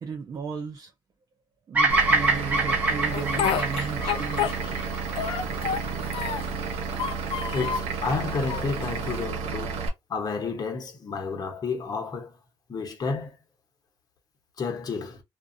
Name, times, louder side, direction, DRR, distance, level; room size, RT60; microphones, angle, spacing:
voice 1, 0.0-0.9 1.7-4.7, right 5 dB, 40° right, 0.5 m, -35 dB
Bird vocalization bird call bird song, 1.7-6.0, right 3 dB, 15° right, 1.0 m, -25 dB
Vehicle / Engine, 1.9-9.9, right 5 dB, 85° right, 0.8 m, -32 dB
Speech, 3.1-4.9 5.2-6.6 6.9-7.9 8.5-9.2, left 8 dB, 65° left, 0.4 m, -30 dB
voice 2, 4.0-4.5 7.5-9.8 10.1-12.3 12.7-13.3 14.6-15.2, left 4 dB, 40° left, 0.9 m, -31 dB
2.5 x 2.3 x 2.5 m
cardioid pair, 115°, 10 cm